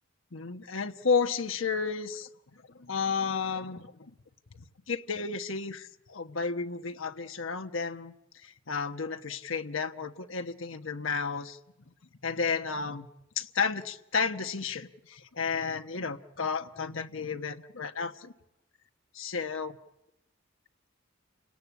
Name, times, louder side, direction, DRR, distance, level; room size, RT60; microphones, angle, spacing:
voice 1, 0.3-2.3 2.7-4.1 4.5-8.1 8.4-11.6 12.2-13.1 13.4-18.3 19.1-19.8, left 5 dB, 80° left, 8 dB, 1.2 m, -32 dB
29.5 x 18.0 x 8.5 m, 0.92 s
head